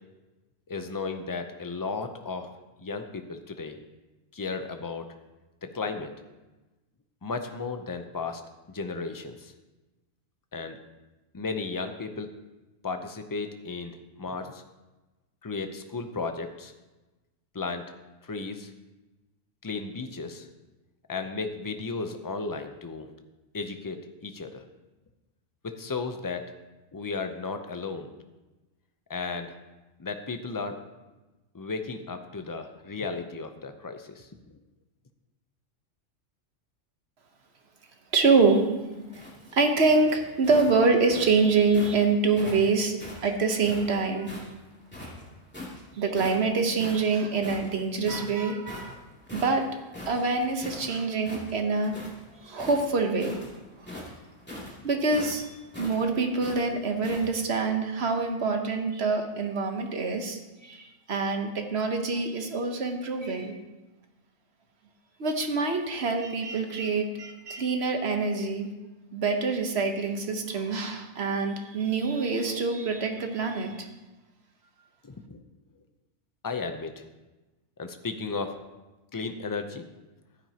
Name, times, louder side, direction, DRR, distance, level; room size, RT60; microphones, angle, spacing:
voice 1, 0.7-2.5 2.8-3.8 4.3-5.1 5.6-6.1 7.2-8.4 8.7-9.5 10.5-10.8 11.3-12.3 12.8-14.6 15.4-16.7 17.5-17.9 18.2-18.7 19.6-20.5 21.1-23.1 23.5-24.7 25.6-26.5 26.9-28.1 29.1-29.5 30.0-30.8 31.5-34.3 75.0-75.4 76.4-77.0 77.8-78.6 79.1-79.8, left 4 dB, 30° left, 7 dB, 0.4 m, -34 dB
voice 2, 38.1-38.6 38.9-39.2 39.5-44.3 45.9-49.0 49.3-49.7 50.1-51.9 52.3-53.4 53.8-53.9 54.8-63.6 65.2-68.7 69.1-73.9, right 4 dB, 55° right, 4 dB, 1.3 m, -26 dB
sound 1, 38.4-42.0 42.4-44.5 44.9-45.8 46.1-46.5 46.8-50.9 51.2-52.2 52.5-57.3, left 1 dB, 10° left, 2.6 m, -41 dB
14.5 x 9.2 x 2.9 m, 1.1 s
omnidirectional pair, 1.4 m